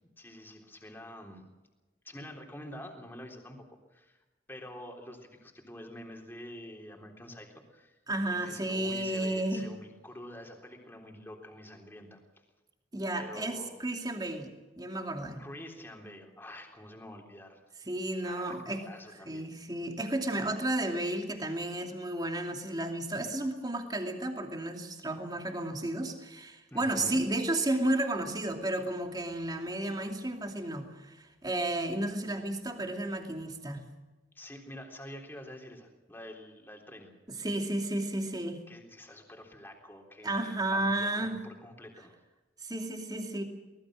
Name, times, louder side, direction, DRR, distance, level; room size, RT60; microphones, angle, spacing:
voice 1, 0.2-1.4 2.0-4.2 4.5-8.0 8.4-12.2 13.1-13.8 15.4-17.6 18.2-19.5 26.7-27.2 34.3-37.1 38.7-42.2, left 1 dB, 10° left, 2 dB, 3.6 m, -47 dB
voice 2, 8.1-9.7 12.9-14.5 14.8-15.4 17.8-18.9 19.3-33.8 37.3-38.6 40.2-41.4 42.6-43.4, right 1 dB, 20° right, 4 dB, 2.7 m, -32 dB
24.0 x 19.5 x 6.4 m, 1.2 s
head